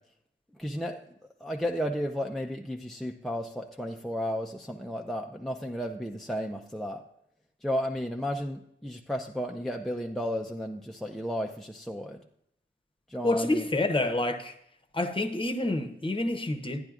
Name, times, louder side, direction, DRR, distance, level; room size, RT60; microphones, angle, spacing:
voice 1, 0.5-1.0 1.4-7.0 7.6-12.2 13.1-13.7, equal, ahead, 2 dB, 0.4 m, -33 dB
voice 2, 13.2-14.5 14.9-16.8, left 2 dB, 25° left, 6 dB, 0.8 m, -28 dB
11.5 x 9.9 x 2.4 m, 0.74 s
wide cardioid pair, 105°, 21 cm